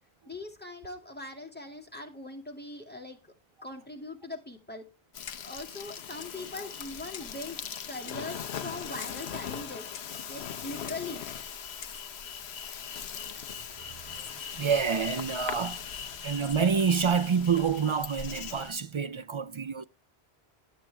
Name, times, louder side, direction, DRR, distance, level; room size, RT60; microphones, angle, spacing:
voice 1, 0.3-3.2 3.6-4.9 5.4-7.6 7.9-9.9 10.3-11.2, left 2 dB, 10° left, 2.1 m, -41 dB
Insect, 5.1-18.7, left 8 dB, 80° left, 1.0 m, -40 dB
Clock, 5.3-5.6 6.2-6.4 7.1-7.4 8.1-8.3 9.0-9.3 9.9-10.2 10.9-11.1 11.8-12.0, left 8 dB, 55° left, 0.7 m, -46 dB
voice 2, 13.8-15.8 16.2-19.8, right 6 dB, 50° right, 0.3 m, -28 dB
11.5 x 7.4 x 3.4 m
omnidirectional pair, 1.1 m